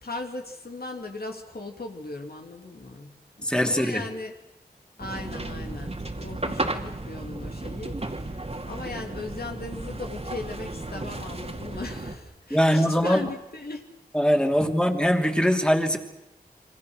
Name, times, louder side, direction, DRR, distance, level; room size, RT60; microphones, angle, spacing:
voice 1, 0.0-4.3 5.0-13.9, left 2 dB, 70° left, 3 dB, 3.1 m, -38 dB
voice 2, 3.4-4.0 12.5-13.3 14.1-16.0, equal, 5° left, 4 dB, 2.9 m, -22 dB
sound 1, 5.0-12.2, right 2 dB, 40° right, 2.5 m, -34 dB
27.5 x 25.0 x 6.4 m, 0.89 s
wide cardioid pair, 55°, 16 cm